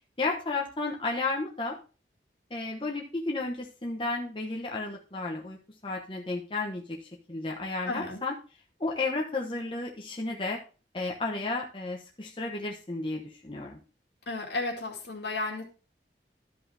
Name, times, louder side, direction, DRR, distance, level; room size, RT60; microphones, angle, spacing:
voice 1, 0.2-1.8 2.5-8.3 8.8-10.6 10.9-13.8, left 3 dB, 30° left, -1 dB, 1.0 m, -33 dB
voice 2, 7.9-8.2 14.3-15.6, left 2 dB, 70° left, 2 dB, 2.2 m, -33 dB
12.0 x 5.5 x 3.4 m, 0.34 s
head